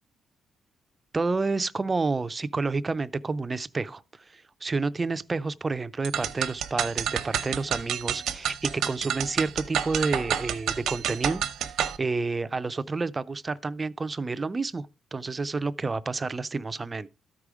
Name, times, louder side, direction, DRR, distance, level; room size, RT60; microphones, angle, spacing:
voice 1, 1.1-17.1, right 3 dB, 25° right, 0.4 m, -30 dB
sound 1, 6.0-12.0, right 9 dB, 85° right, 0.8 m, -29 dB
12.5 x 4.8 x 4.9 m
cardioid pair, 120°, 0 cm